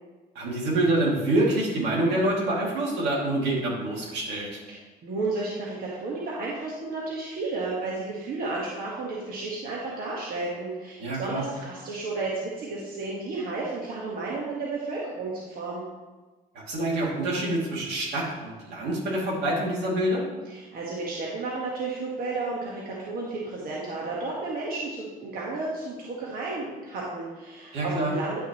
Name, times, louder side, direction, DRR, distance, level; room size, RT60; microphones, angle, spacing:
voice 1, 0.3-4.6 11.0-11.4 16.7-20.2 27.7-28.1, right 1 dB, 85° right, -4 dB, 2.8 m, -26 dB
voice 2, 4.7-15.8 20.5-28.4, right 3 dB, 60° right, -4 dB, 1.6 m, -32 dB
10.5 x 6.0 x 3.2 m, 1.2 s
cardioid pair, 110°, 17 cm